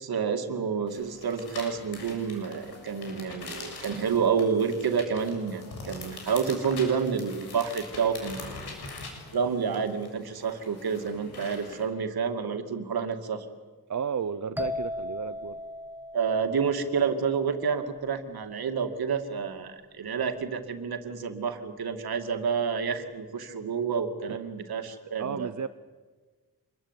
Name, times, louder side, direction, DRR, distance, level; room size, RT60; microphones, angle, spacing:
voice 1, 0.0-8.5 9.3-13.5 16.1-25.5, right 6 dB, 70° right, 7 dB, 2.5 m, -29 dB
sound 1, 0.9-11.8, left 3 dB, 75° left, 7.0 m, -43 dB
voice 2, 13.9-15.6 24.3-24.4 25.2-25.7, right 7 dB, 50° right, 10 dB, 0.8 m, -33 dB
sound 2, 14.6-18.2, left 2 dB, 5° right, 1.6 m, -38 dB
26.5 x 22.0 x 9.1 m, 1.4 s
wide cardioid pair, 170°, 39 cm